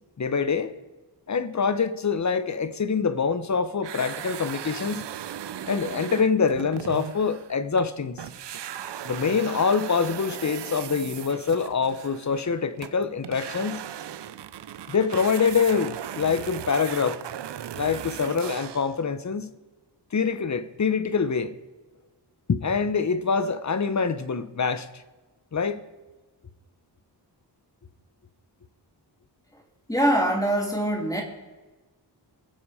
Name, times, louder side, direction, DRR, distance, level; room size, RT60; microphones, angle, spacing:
voice 1, 0.2-0.7 1.3-5.0 5.7-8.2 9.0-13.8 14.9-17.2 17.8-19.5 20.1-21.5 22.5-24.9 25.5-25.9, left 5 dB, 40° left, 0.9 m, -25 dB
sound 1, 3.8-7.9 8.2-19.0, right 10 dB, 75° right, 0.6 m, -37 dB
voice 2, 29.9-31.2, right 1 dB, 10° left, 2.7 m, -23 dB
23.5 x 7.9 x 4.9 m
wide cardioid pair, 115°, 42 cm